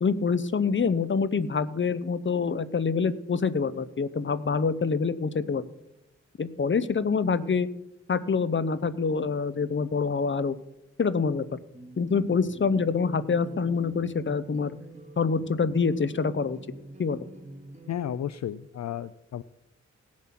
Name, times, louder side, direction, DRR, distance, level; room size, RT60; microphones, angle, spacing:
voice 1, 0.0-5.6 6.4-7.7 8.1-10.6 11.0-11.4 12.0-14.8 15.2-16.6 17.0-17.3, left 5 dB, 40° left, 15 dB, 0.8 m, -26 dB
sound 1, 11.7-18.1, right 1 dB, 25° right, 2.5 m, -46 dB
voice 2, 17.9-19.4, left 10 dB, 65° left, 16 dB, 0.4 m, -33 dB
17.5 x 7.4 x 6.0 m, 0.90 s
cardioid pair, 65°, 29 cm